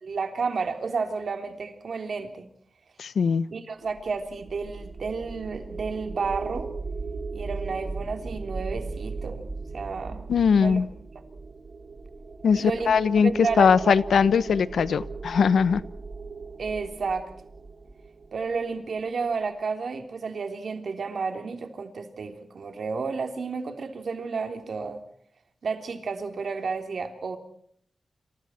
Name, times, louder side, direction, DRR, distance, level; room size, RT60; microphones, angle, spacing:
voice 1, 0.0-2.5 3.5-6.7 7.3-9.5 9.7-10.8 12.5-12.9 13.2-14.0 16.6-17.3 18.3-25.0 25.6-27.4, right 4 dB, 60° right, 6 dB, 3.5 m, -31 dB
voice 2, 3.0-3.5 10.3-10.9 12.4-15.8, left 6 dB, 90° left, 16 dB, 1.0 m, -21 dB
sound 1, 3.9-19.0, right 4 dB, 35° right, 1.4 m, -38 dB
29.5 x 27.0 x 4.5 m, 0.67 s
wide cardioid pair, 120°, 0 cm